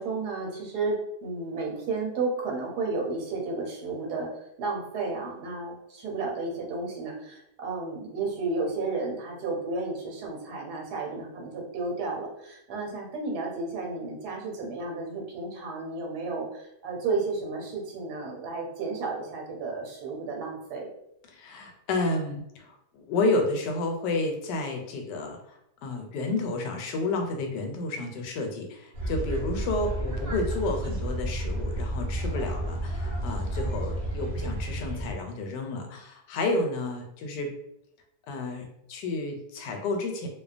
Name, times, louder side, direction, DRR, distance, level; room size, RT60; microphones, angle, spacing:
voice 1, 0.0-4.3 4.6-20.9, right 3 dB, 75° right, -1 dB, 1.2 m, -32 dB
voice 2, 21.3-25.4 25.8-37.5 38.3-40.3, left 2 dB, 90° left, 3 dB, 1.2 m, -31 dB
sound 1, 28.9-35.1, right 1 dB, 55° right, 0.6 m, -31 dB
2.7 x 2.1 x 2.4 m, 0.79 s
omnidirectional pair, 1.8 m